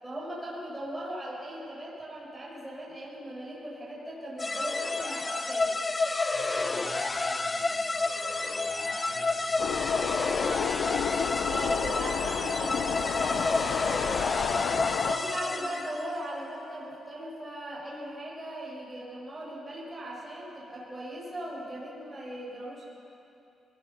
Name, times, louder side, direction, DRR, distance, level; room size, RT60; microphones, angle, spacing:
voice 1, 0.0-5.8 11.5-14.5 15.0-22.8, right 1 dB, 10° right, -6 dB, 7.1 m, -39 dB
sound 1, 4.4-16.1, left 3 dB, 25° left, 0.8 m, -30 dB
voice 2, 6.3-11.3 15.0-15.3, right 3 dB, 50° right, -5 dB, 5.9 m, -50 dB
sound 2, 9.6-15.1, left 8 dB, 75° left, 0.7 m, -31 dB
23.5 x 20.0 x 6.0 m, 2.7 s
cardioid pair, 120°, 0 cm